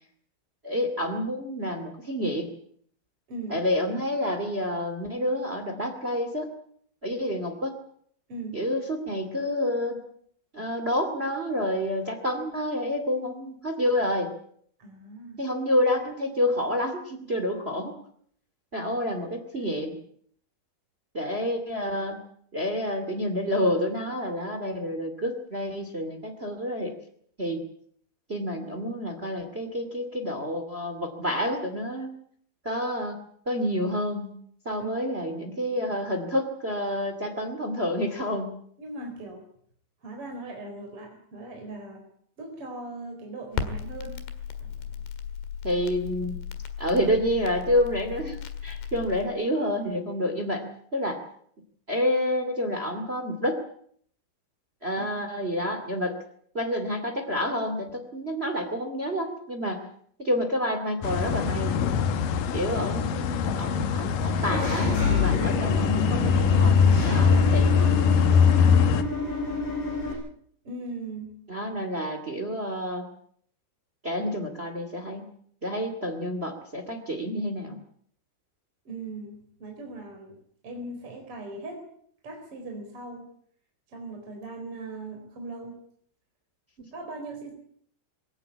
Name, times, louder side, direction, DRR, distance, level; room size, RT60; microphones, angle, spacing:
voice 1, 0.6-2.5 3.5-6.5 7.0-7.7 8.5-10.0 10.5-14.3 15.4-17.9 18.7-20.0 21.1-22.2 22.5-26.9 27.4-27.6 28.3-32.1 32.6-33.2 33.4-34.3 34.6-38.5 45.6-46.4 46.8-50.7 50.9-51.2 51.9-53.6 54.8-56.1 56.5-59.8 60.2-61.8 62.5-67.9 71.5-73.0 74.0-75.3 75.6-77.8 86.8-86.9, left 1 dB, 60° right, 6 dB, 0.6 m, -28 dB
voice 2, 3.3-3.6 8.3-8.6 14.8-15.4 34.8-34.9 38.8-39.4 40.0-42.0 42.4-44.2 44.6-45.0 55.0-55.1 70.6-71.3 78.8-80.4 80.6-81.8 82.2-83.3 83.9-85.8 86.9-87.5, right 2 dB, 30° right, 2 dB, 4.6 m, -39 dB
Crackle, 43.5-49.3, left 7 dB, 65° left, 3.7 m, -36 dB
sound 1, 61.0-69.0, left 6 dB, 80° left, 1.9 m, -22 dB
Engine / Mechanisms, 64.2-70.1, left 4 dB, 40° left, 8.1 m, -28 dB
22.5 x 17.0 x 8.5 m, 0.64 s
omnidirectional pair, 5.8 m